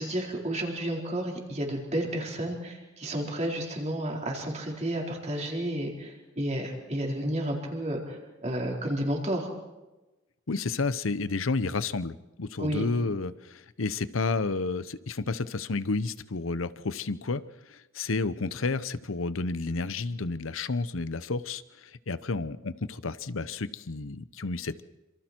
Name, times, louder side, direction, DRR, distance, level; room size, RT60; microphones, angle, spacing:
voice 1, 0.0-9.5 12.6-12.9, right 1 dB, 35° right, 0 dB, 4.4 m, -31 dB
voice 2, 10.5-17.4 17.7-24.8, left 3 dB, 85° left, 15 dB, 0.9 m, -31 dB
27.5 x 26.5 x 4.6 m, 1.1 s
head